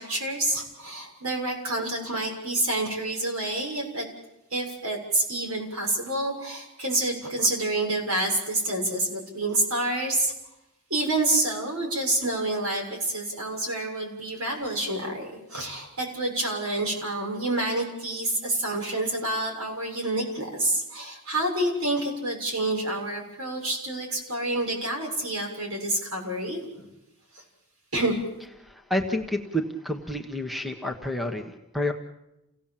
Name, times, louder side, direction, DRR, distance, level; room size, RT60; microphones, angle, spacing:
voice 1, 0.0-4.1 4.5-10.3 10.9-26.8 27.3-27.4 27.9-28.2, right 2 dB, 80° right, 1 dB, 6.9 m, -28 dB
voice 2, 28.6-31.9, left 1 dB, ahead, 5 dB, 1.3 m, -29 dB
29.0 x 17.5 x 7.5 m, 0.91 s
head